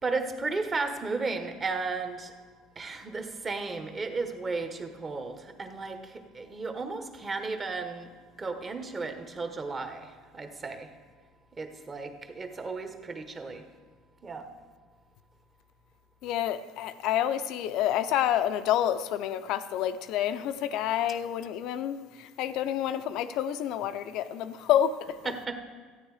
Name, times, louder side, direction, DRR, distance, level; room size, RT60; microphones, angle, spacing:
voice 1, 0.0-2.3 2.8-8.1 8.4-10.9 11.5-13.6 14.2-14.5 25.2-25.6, right 3 dB, 30° right, 7 dB, 1.2 m, -34 dB
voice 2, 16.2-25.2, left 11 dB, 65° left, 12 dB, 0.6 m, -28 dB
14.0 x 9.1 x 4.9 m, 1.5 s
supercardioid pair, 90°, 0 cm